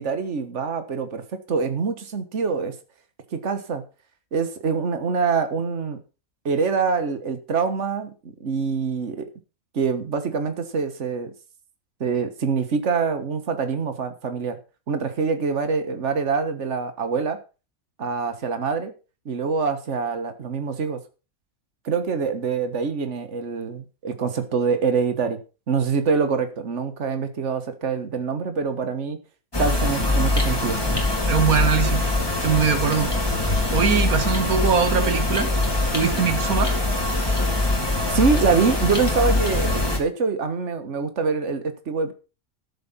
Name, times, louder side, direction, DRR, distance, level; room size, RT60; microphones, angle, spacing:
voice 1, 0.0-2.7 3.3-3.8 4.3-6.0 6.4-8.1 8.4-9.3 9.7-11.3 12.0-14.6 14.9-17.4 18.0-18.9 19.2-21.0 21.8-25.4 25.7-29.2 29.6-30.8 38.1-42.1, right 5 dB, 55° right, 9 dB, 1.8 m, -25 dB
sound 1, 29.5-40.0, left 2 dB, 15° left, 2.9 m, -23 dB
voice 2, 31.3-32.0 32.4-33.1 33.7-35.5 35.9-36.7, right 6 dB, 85° right, 10 dB, 1.9 m, -21 dB
13.0 x 7.8 x 5.8 m, 0.33 s
omnidirectional pair, 1.5 m